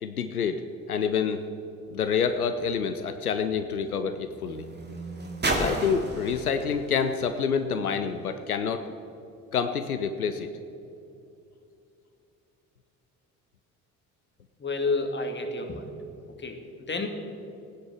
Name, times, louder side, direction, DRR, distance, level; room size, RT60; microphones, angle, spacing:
voice 1, 0.0-0.6 0.9-1.4 1.9-4.7 5.6-8.9 9.5-10.5, left 6 dB, 85° left, 9 dB, 0.6 m, -27 dB
sound 1, 1.9-8.4 9.2-9.3, right 2 dB, 25° right, 2.4 m, -35 dB
voice 2, 14.6-15.9 16.4-16.6 16.9-17.1, left 3 dB, 25° left, 5 dB, 2.1 m, -29 dB
17.0 x 9.7 x 6.3 m, 2.7 s
figure-of-eight pair, 50°, 43 cm